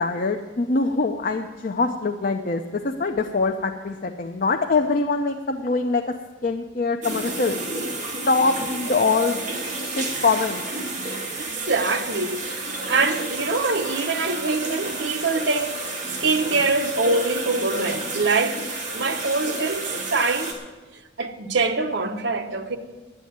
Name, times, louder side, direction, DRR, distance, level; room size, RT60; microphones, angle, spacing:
voice 1, 0.0-6.1 6.4-7.6 8.3-10.6, left 3 dB, 45° left, 0.5 m, -24 dB
sound 1, 7.0-20.5, right 2 dB, 40° right, 2.2 m, -31 dB
voice 2, 11.4-15.8 16.1-18.6 18.9-20.5 21.2-22.8, right 3 dB, 65° right, 0.9 m, -24 dB
9.9 x 8.3 x 9.3 m
head